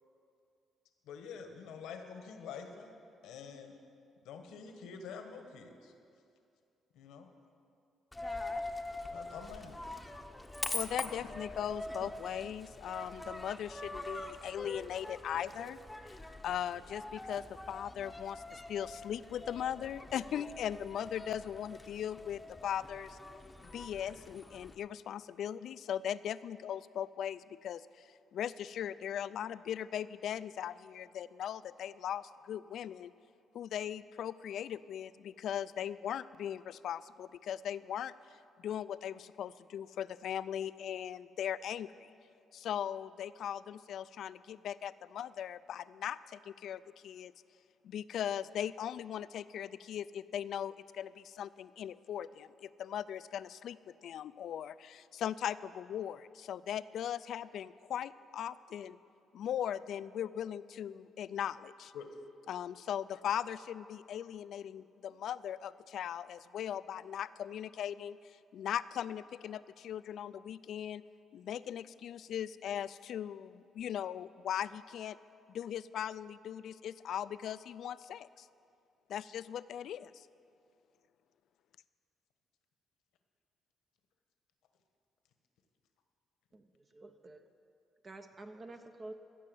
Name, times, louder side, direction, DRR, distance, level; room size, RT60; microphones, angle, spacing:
voice 1, 1.1-3.8 4.2-5.9 6.9-7.3 9.1-9.7 61.9-62.1, left 6 dB, 90° left, 5 dB, 1.2 m, -47 dB
Coin (dropping), 8.1-24.8, left 2 dB, 10° left, 0.8 m, -44 dB
voice 2, 10.7-15.8 16.1-16.2 16.4-23.2 23.7-33.1 33.5-42.1 42.5-47.3 47.8-59.0 59.3-61.9 62.5-71.0 71.3-75.2 75.5-78.5 79.1-80.3, left 9 dB, 70° left, 16 dB, 0.3 m, -39 dB
voice 3, 86.5-87.5 88.0-89.1, right 2 dB, 35° right, 6 dB, 0.7 m, -49 dB
15.5 x 6.6 x 7.7 m, 2.5 s
cardioid pair, 90°, 0 cm